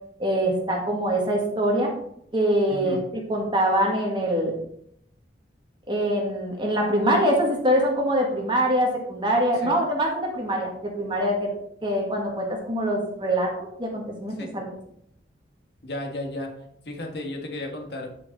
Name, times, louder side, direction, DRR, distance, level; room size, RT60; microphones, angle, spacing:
voice 1, 0.2-1.9 2.3-3.0 3.3-4.5 5.9-11.5 11.8-14.6, equal, 25° right, 0 dB, 1.6 m, -24 dB
voice 2, 2.7-3.0 9.6-9.7 14.4-14.5 15.8-16.5 16.8-18.1, left 1 dB, 70° left, 2 dB, 1.6 m, -33 dB
9.5 x 5.1 x 4.0 m, 0.72 s
head